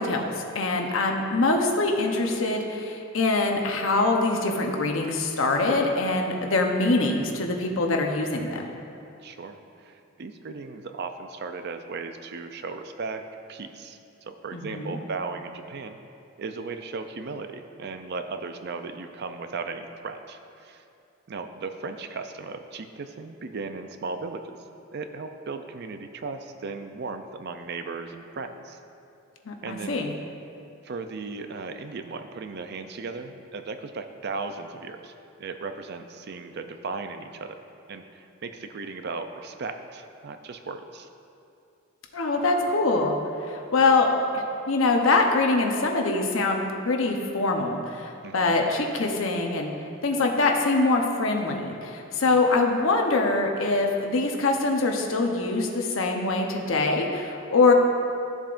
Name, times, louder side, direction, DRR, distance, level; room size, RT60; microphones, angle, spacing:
voice 1, 0.0-8.7 14.5-15.0 29.5-30.1 42.1-43.2 43.5-49.7 50.0-57.7, left 3 dB, 90° left, 2 dB, 0.9 m, -24 dB
voice 2, 9.2-14.0 14.3-16.0 16.4-20.8 21.3-24.6 24.9-28.8 29.6-30.1 30.8-35.1 35.4-37.6 37.9-41.1 48.2-48.5 52.3-52.4, right 4 dB, 55° right, 7 dB, 0.5 m, -36 dB
13.0 x 7.2 x 2.6 m, 2.7 s
head